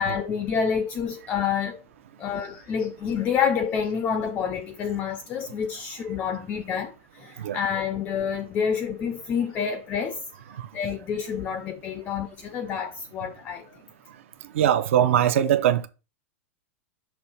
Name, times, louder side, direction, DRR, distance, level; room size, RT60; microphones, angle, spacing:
voice 1, 0.0-1.9 2.2-10.2 10.7-13.8, left 7 dB, 20° left, 0.4 m, -28 dB
voice 2, 14.6-15.9, right 10 dB, 65° right, 0.7 m, -21 dB
6.2 x 3.1 x 5.5 m
supercardioid pair, 180°, 8 cm